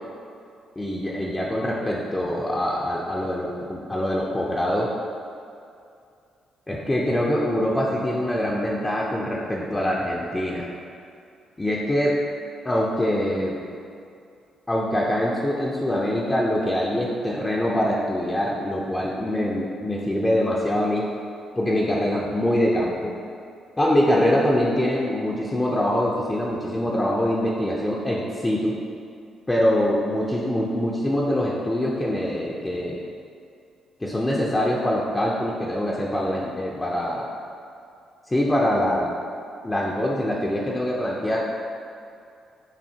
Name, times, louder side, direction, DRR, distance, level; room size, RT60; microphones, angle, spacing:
voice 1, 0.8-4.9 6.7-10.7 11.6-12.2 12.6-13.6 14.7-21.1 21.6-23.1 23.8-28.8 29.5-33.0 34.0-37.3 38.3-39.1 39.6-41.5, left 1 dB, 15° left, -4 dB, 0.5 m, -24 dB
7.1 x 2.7 x 2.8 m, 2.5 s
cardioid pair, 90°, 0 cm